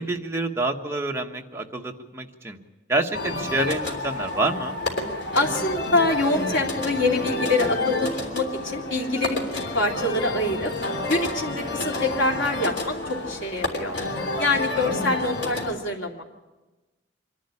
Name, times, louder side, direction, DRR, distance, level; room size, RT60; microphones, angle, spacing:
voice 1, 0.0-2.6 2.9-4.8 14.3-14.4 14.7-15.0, right 2 dB, 15° right, 1 dB, 1.4 m, -27 dB
sound 1, 3.1-15.7, left 2 dB, 65° left, 3.3 m, -30 dB
voice 2, 5.3-10.7 11.1-14.0 14.4-16.2, left 2 dB, 85° left, 0 dB, 2.8 m, -25 dB
26.0 x 11.5 x 9.9 m, 1.2 s
head